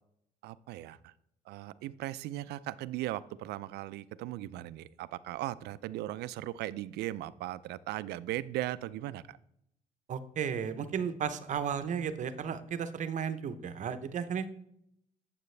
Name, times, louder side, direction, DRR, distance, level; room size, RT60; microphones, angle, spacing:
voice 1, 0.4-1.1 1.5-9.4, right 15 dB, 75° right, 16 dB, 0.4 m, -38 dB
voice 2, 10.1-14.5, right 7 dB, 45° right, 11 dB, 0.7 m, -34 dB
9.1 x 7.4 x 3.3 m, 0.75 s
cardioid pair, 110°, 17 cm